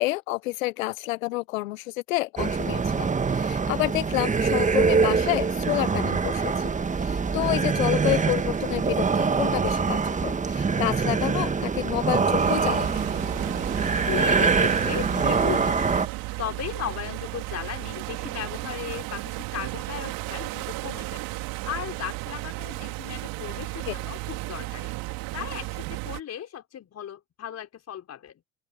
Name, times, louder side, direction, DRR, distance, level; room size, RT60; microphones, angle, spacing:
voice 1, 0.0-13.0 23.9-24.0, left 20 dB, 80° left, 0.7 m, -29 dB
sound 1, 2.4-16.1, right 5 dB, 20° right, 1.5 m, -24 dB
sound 2, 12.4-26.2, right 21 dB, 60° right, 3.7 m, -34 dB
voice 2, 13.9-16.1 16.4-21.2 21.7-24.9 25.3-28.4, left 10 dB, 40° left, 5.4 m, -36 dB
open air
hypercardioid pair, 80°, 39 cm